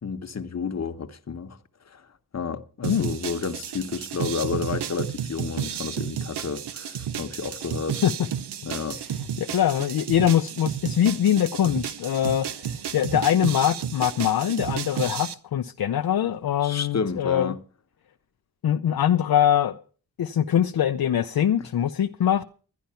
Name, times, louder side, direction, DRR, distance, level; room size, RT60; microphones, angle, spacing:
voice 1, 0.0-1.6 1.9-2.0 2.3-8.0 8.6-9.0 16.6-17.6, left 5 dB, 40° left, 1.0 m, -31 dB
sound 1, 2.8-15.3, right 9 dB, 80° right, 0.7 m, -32 dB
voice 2, 9.4-17.6 18.6-19.8 20.2-22.4, left 10 dB, 65° left, 0.6 m, -23 dB
11.5 x 10.5 x 5.6 m
cardioid pair, 65°, 40 cm